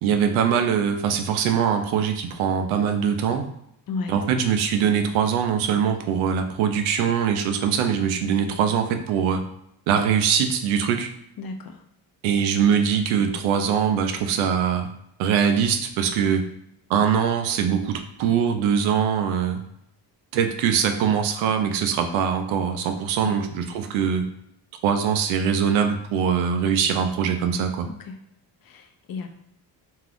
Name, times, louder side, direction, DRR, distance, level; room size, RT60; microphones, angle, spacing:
voice 1, 0.0-3.5 4.1-9.4 9.9-11.1 12.2-14.9 15.2-16.5 16.9-19.6 20.3-24.3 24.8-27.9, right 7 dB, 85° right, 6 dB, 0.6 m, -22 dB
voice 2, 3.9-4.2 11.4-11.8 23.2-23.5 27.8-28.2 28.6-29.3, left 4 dB, 50° left, 5 dB, 0.6 m, -33 dB
2.6 x 2.3 x 3.4 m, 0.76 s
supercardioid pair, 60°, 47 cm